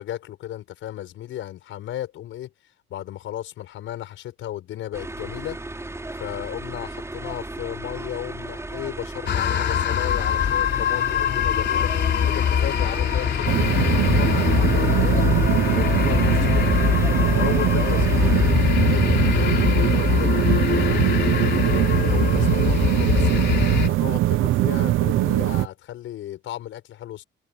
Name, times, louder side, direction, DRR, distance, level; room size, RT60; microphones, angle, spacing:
voice 1, 0.0-2.5 2.9-5.6 6.2-11.9 12.2-15.3 15.6-16.9 17.3-20.3 20.7-23.4 23.9-27.2, left 12 dB, 80° left, 6.3 m, -35 dB
sound 1, 4.9-18.5, right 2 dB, 15° right, 5.6 m, -35 dB
sound 2, 9.3-23.9, left 9 dB, 60° left, 3.3 m, -22 dB
sound 3, 13.5-25.7, right 15 dB, 85° right, 0.9 m, -22 dB
cardioid pair, 90°, 20 cm